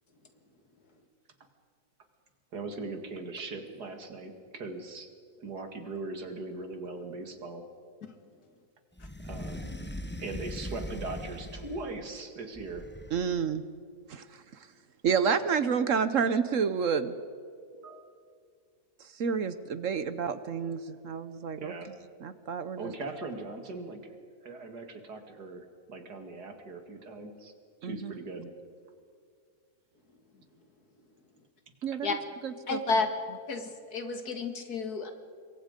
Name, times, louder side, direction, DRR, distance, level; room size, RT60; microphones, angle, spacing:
voice 1, 2.5-5.1 5.4-7.6 9.2-9.8 10.2-12.9 17.7-18.1 21.6-21.9 22.8-24.2 24.4-27.5 27.8-28.5, right 3 dB, 80° right, 6 dB, 2.7 m, -40 dB
sound 1, 9.0-12.0 12.5-13.5, left 1 dB, 10° left, 0.9 m, -40 dB
voice 2, 13.1-13.6 14.1-14.2 15.0-17.1 19.2-21.7 22.2-22.9 27.8-28.1 31.8-32.1 32.4-32.8, right 6 dB, 60° right, 13 dB, 1.1 m, -29 dB
voice 3, 32.7-33.1 33.5-35.1, left 4 dB, 70° left, 6 dB, 2.4 m, -31 dB
27.0 x 22.5 x 5.2 m, 2.2 s
omnidirectional pair, 1.7 m